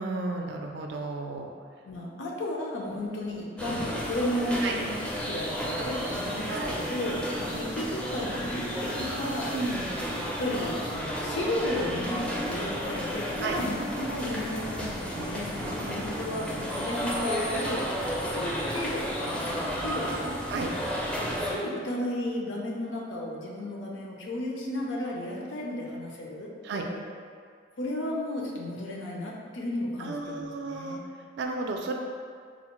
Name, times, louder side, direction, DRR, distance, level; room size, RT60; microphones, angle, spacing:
voice 1, 0.0-1.5 4.6-4.7 6.5-6.8 9.5-9.9 13.4-13.6 15.7-15.9 20.5-20.7 26.6-26.9 30.0-31.0 31.4-31.9, right 3 dB, 60° right, 2 dB, 0.3 m, -33 dB
voice 2, 1.8-9.5 10.3-17.8 18.2-20.4 21.2-27.0 27.8-31.0, left 1 dB, 75° left, -2 dB, 0.6 m, -33 dB
sound 1, 3.6-21.5, equal, 5° left, 0.4 m, -32 dB
4.0 x 2.1 x 3.0 m, 2.1 s
head